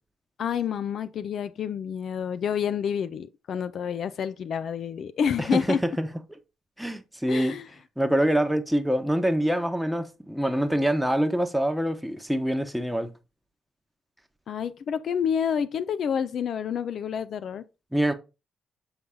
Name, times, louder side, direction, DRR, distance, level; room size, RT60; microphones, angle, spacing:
voice 1, 0.4-5.8 7.3-7.7 14.5-17.6, left 7 dB, 65° left, 0.4 m, -28 dB
voice 2, 5.4-6.1 6.8-7.6 8.0-13.1 17.9-18.1, right 1 dB, 5° right, 1.0 m, -25 dB
7.0 x 3.9 x 3.7 m
supercardioid pair, 70°, 0 cm